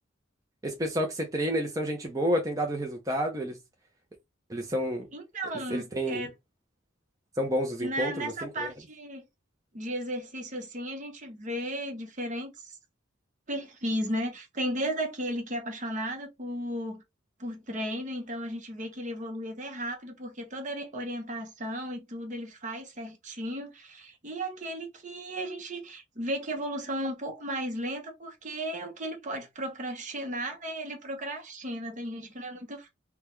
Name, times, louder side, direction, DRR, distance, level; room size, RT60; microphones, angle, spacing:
voice 1, 0.6-3.6 4.5-5.1 5.7-6.3 7.4-8.7, equal, 20° right, 0.6 m, -30 dB
voice 2, 5.1-6.3 7.8-9.2 9.7-12.7 13.5-17.0 17.4-32.9, right 1 dB, 40° right, 0.9 m, -35 dB
3.6 x 2.2 x 3.1 m
head